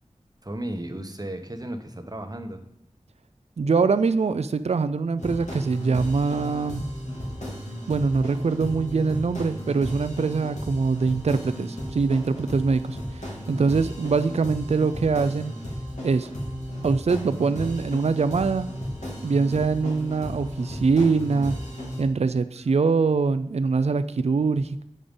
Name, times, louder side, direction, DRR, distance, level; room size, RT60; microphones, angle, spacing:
voice 1, 0.4-2.6 7.5-7.7, right 1 dB, 30° right, 6 dB, 1.0 m, -35 dB
voice 2, 3.6-6.8 7.9-15.5 16.0-16.3 16.8-18.7 19.2-21.6 22.0-24.8, right 4 dB, 60° right, 12 dB, 0.4 m, -23 dB
sound 1, 5.2-22.0, equal, 75° left, 2.3 m, -34 dB
8.5 x 5.1 x 5.3 m, 0.79 s
wide cardioid pair, 40°, 12 cm